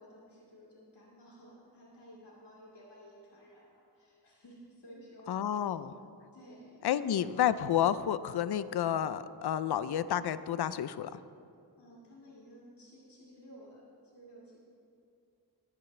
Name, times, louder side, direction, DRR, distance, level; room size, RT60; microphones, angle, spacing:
voice 1, 0.0-5.7 6.3-7.1 11.8-14.6, equal, 90° left, -7 dB, 2.2 m, -54 dB
voice 2, 5.3-6.0 6.8-11.1, left 10 dB, 70° left, 14 dB, 0.5 m, -30 dB
20.5 x 8.1 x 3.3 m, 2.5 s
wide cardioid pair, 115°, 40 cm